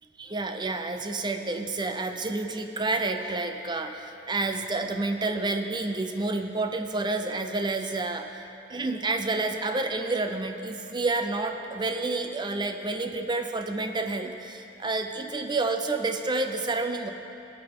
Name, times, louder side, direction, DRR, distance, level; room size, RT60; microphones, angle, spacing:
voice 1, 0.2-17.1, right 3 dB, 25° right, 6 dB, 0.6 m, -29 dB
18.0 x 8.8 x 3.8 m, 2.8 s
head